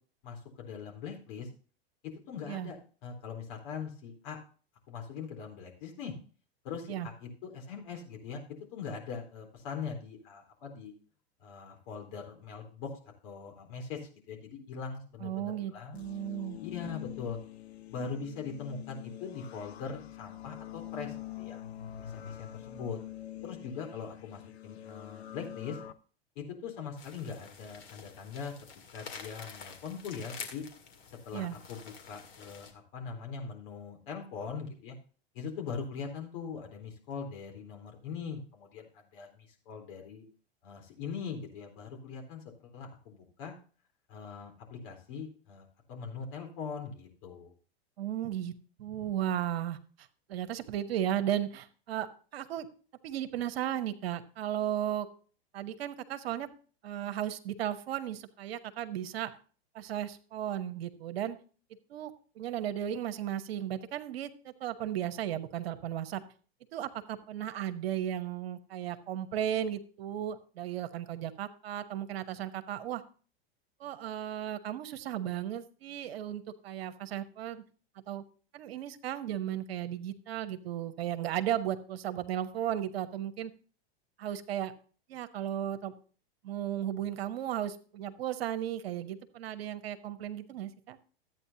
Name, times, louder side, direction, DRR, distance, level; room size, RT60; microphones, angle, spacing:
voice 1, 0.2-1.5 2.3-4.4 4.9-6.1 6.6-8.4 8.7-10.9 11.4-12.9 13.2-14.0 14.3-16.0 16.6-17.4 17.9-21.6 22.0-23.0 23.4-25.8 26.4-28.5 28.9-30.6 31.3-34.9 35.3-40.2 40.6-43.5 44.1-47.5, left 6 dB, 60° left, 2 dB, 3.9 m, -41 dB
voice 2, 15.2-16.6 31.3-31.6 48.0-48.5 48.8-52.1 52.3-52.7 53.0-55.1 55.5-56.5 56.8-59.3 59.7-61.4 61.9-66.2 66.7-73.0 73.8-77.6 78.1-78.2 78.5-83.5 84.2-84.7 85.1-85.9 86.4-91.0, right 11 dB, 70° right, 10 dB, 1.1 m, -35 dB
sound 1, 15.9-25.9, left 12 dB, 85° left, 0.8 m, -45 dB
sound 2, 27.0-32.7, left 6 dB, 40° left, 2.1 m, -48 dB
13.0 x 8.9 x 2.8 m, 0.40 s
hypercardioid pair, 105°, 31 cm